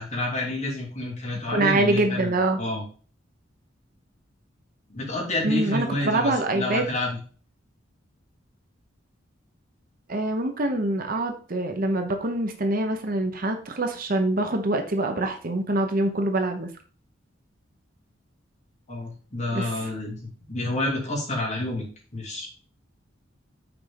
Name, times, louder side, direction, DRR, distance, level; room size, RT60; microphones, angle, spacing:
voice 1, 0.0-2.8 4.9-7.1 18.9-20.2 20.5-21.8 22.1-22.5, left 2 dB, 40° left, -4 dB, 3.1 m, -29 dB
voice 2, 1.5-2.6 5.4-6.8 10.1-16.7 19.5-19.7, right 2 dB, 50° right, 6 dB, 1.0 m, -25 dB
6.1 x 4.5 x 5.2 m, 0.40 s
head